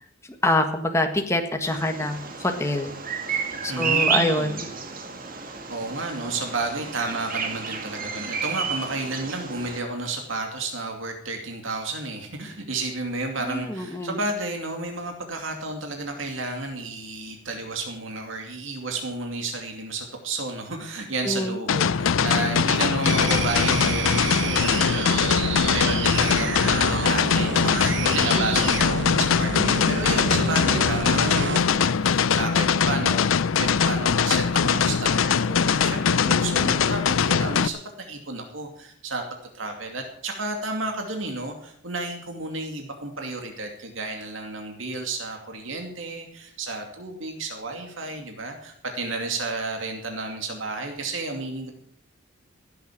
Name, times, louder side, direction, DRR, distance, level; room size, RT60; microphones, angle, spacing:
voice 1, 0.4-2.9 3.6-4.7 13.5-14.2 21.2-21.6 28.3-28.7, left 1 dB, 15° left, 4 dB, 1.5 m, -25 dB
Bird vocalization bird call bird song, 1.6-9.8, right 5 dB, 45° right, 2.0 m, -31 dB
voice 2, 3.7-4.6 5.3-33.3 33.6-39.2 39.5-51.7, right 3 dB, 80° right, 3 dB, 2.5 m, -32 dB
sound 1, 21.7-37.7, left 6 dB, 90° left, 0.5 m, -22 dB
sound 2, 23.0-31.7, right 5 dB, 65° right, 0.9 m, -29 dB
16.0 x 8.1 x 7.3 m, 0.67 s
head